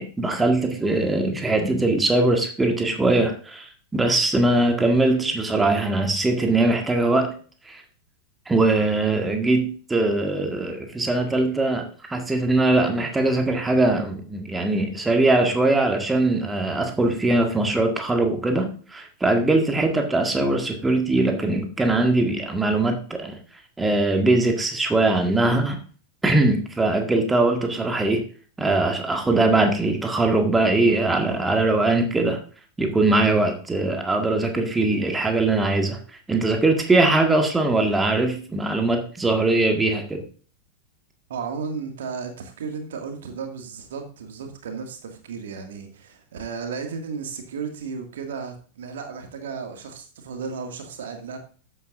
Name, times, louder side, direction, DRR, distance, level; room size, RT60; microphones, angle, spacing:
voice 1, 0.0-7.3 7.7-7.8 8.5-23.4 23.8-25.8 26.2-28.2 28.6-32.4 32.8-36.0 36.3-40.2, right 2 dB, 10° right, 3 dB, 1.7 m, -21 dB
voice 2, 41.3-51.4, right 5 dB, 60° right, 4 dB, 2.1 m, -34 dB
13.5 x 8.8 x 2.6 m, 0.40 s
figure-of-eight pair, 90°, 0 cm